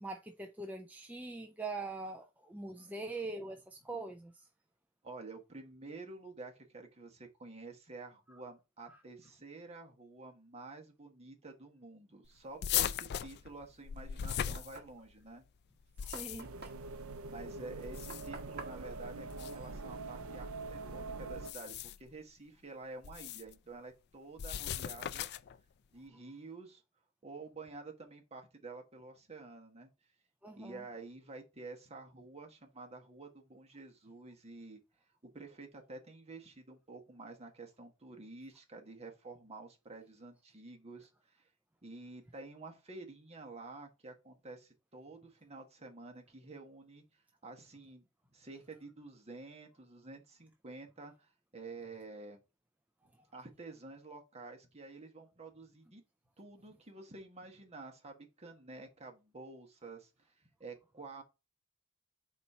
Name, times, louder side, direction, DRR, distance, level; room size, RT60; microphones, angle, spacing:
voice 1, 0.0-4.3 16.0-16.5 30.4-30.8, right 3 dB, 5° right, 0.5 m, -42 dB
voice 2, 5.0-15.4 17.2-25.3 25.9-26.8 27.2-29.9 30.6-34.8 35.2-41.5 41.8-52.4 53.3-56.0 56.4-60.1 60.4-61.2, right 3 dB, 30° right, 1.3 m, -50 dB
sound 1, 12.6-15.2 15.8-16.6 17.8-18.5 19.3-19.5 21.3-22.1 23.0-23.5 24.4-25.6, left 10 dB, 50° left, 0.3 m, -38 dB
Knock, 13.8-20.2, right 3 dB, 45° right, 1.3 m, -52 dB
sound 2, 16.4-21.5, right 3 dB, 75° right, 0.6 m, -44 dB
4.3 x 4.2 x 5.4 m
head